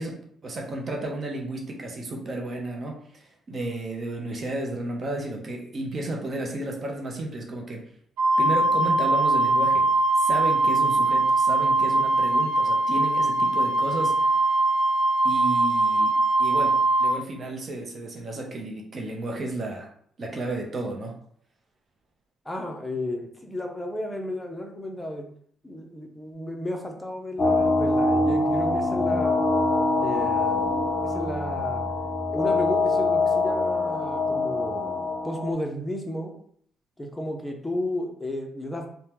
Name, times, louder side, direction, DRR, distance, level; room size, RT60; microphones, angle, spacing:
voice 1, 0.0-7.8 8.4-9.9 10.2-14.3 15.2-19.9 20.2-21.2, right 2 dB, 45° right, 1 dB, 0.7 m, -32 dB
Wind instrument woodwind instrument, 8.2-17.1, right 2 dB, 90° right, 0.6 m, -21 dB
voice 2, 22.5-25.3 25.6-29.3 30.0-31.8 32.3-36.3 37.0-38.9, left 1 dB, 10° left, 2 dB, 0.6 m, -33 dB
sound 1, 27.4-35.5, left 3 dB, 40° left, 0.9 m, -24 dB
3.2 x 2.2 x 2.9 m, 0.63 s
cardioid pair, 90°, 0 cm